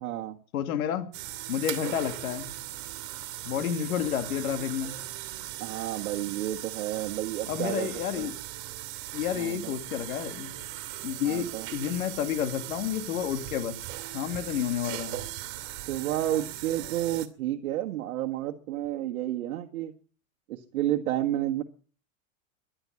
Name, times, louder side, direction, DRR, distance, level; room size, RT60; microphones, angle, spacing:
voice 1, 0.0-0.4 5.6-7.9 8.2-8.3 9.3-9.7 11.2-11.7 15.9-19.9 20.5-21.6, right 13 dB, 75° right, 3 dB, 1.6 m, -31 dB
voice 2, 0.5-1.1 1.5-2.5 3.4-4.9 7.5-8.3 9.1-10.5 11.0-13.8 14.1-15.2, left 9 dB, 85° left, 8 dB, 2.9 m, -30 dB
sound 1, 1.1-17.3, right 15 dB, 60° right, 2.8 m, -39 dB
14.5 x 11.5 x 8.4 m, 0.42 s
supercardioid pair, 125°, 42 cm